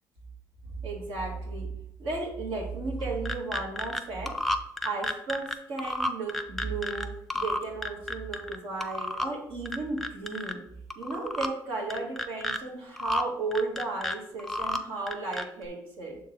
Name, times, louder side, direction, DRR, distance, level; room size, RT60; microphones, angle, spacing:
voice 1, 0.8-1.7 2.0-4.3 4.8-7.1 7.3-10.6 10.9-16.2, right 3 dB, 80° right, -1 dB, 1.9 m, -34 dB
sound 1, 3.0-4.0 4.3-7.1 7.3-8.6 8.8-9.3 9.7-10.5 10.9-11.5 11.9-12.6 13.0-13.2 13.5-14.8 15.1-15.7, left 1 dB, 5° left, 0.5 m, -31 dB
6.6 x 3.9 x 4.0 m, 0.74 s
cardioid pair, 80°, 9 cm